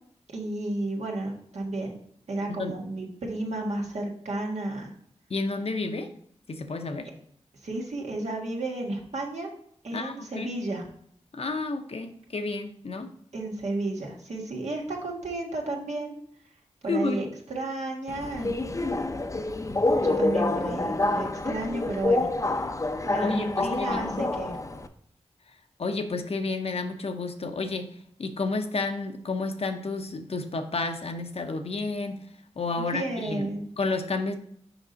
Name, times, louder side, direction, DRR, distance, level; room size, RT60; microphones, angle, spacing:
voice 1, 0.3-2.0 2.3-4.9 7.6-9.5 9.8-10.8 13.3-16.2 16.8-18.8 20.0-22.3 23.0-24.6 32.8-33.6, right 2 dB, 75° right, 0 dB, 1.5 m, -32 dB
voice 2, 5.3-6.1 6.5-7.1 9.9-10.5 11.3-13.1 16.9-17.3 23.2-24.2 25.8-27.9 28.2-32.2 32.6-33.5 33.8-34.4, left 3 dB, 60° left, 7 dB, 0.8 m, -31 dB
Subway metro underground, 18.1-24.9, left 2 dB, 25° left, 0.6 m, -27 dB
5.9 x 5.4 x 3.9 m, 0.67 s
wide cardioid pair, 65°, 12 cm